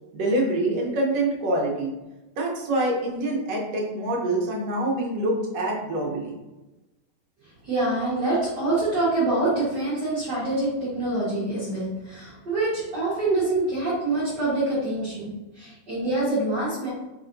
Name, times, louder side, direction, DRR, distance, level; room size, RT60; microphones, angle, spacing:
voice 1, 0.1-1.9 2.4-6.4, right 1 dB, 70° right, -2 dB, 1.6 m, -25 dB
voice 2, 7.6-16.9, right 2 dB, 50° right, -10 dB, 1.3 m, -25 dB
5.0 x 4.0 x 2.6 m, 1.0 s
omnidirectional pair, 3.7 m